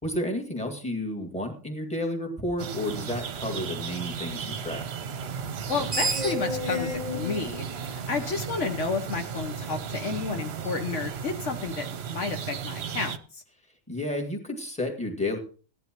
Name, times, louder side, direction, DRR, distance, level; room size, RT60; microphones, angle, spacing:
voice 1, 0.0-4.9 13.9-15.4, left 1 dB, 5° left, 0 dB, 2.0 m, -31 dB
sound 1, 2.6-13.2, right 7 dB, 55° right, 0.9 m, -35 dB
Screech, 5.6-8.8, equal, 30° right, 1.0 m, -32 dB
voice 2, 5.7-13.4, left 4 dB, 65° left, 6 dB, 1.3 m, -31 dB
16.0 x 11.0 x 3.0 m, 0.39 s
omnidirectional pair, 1.3 m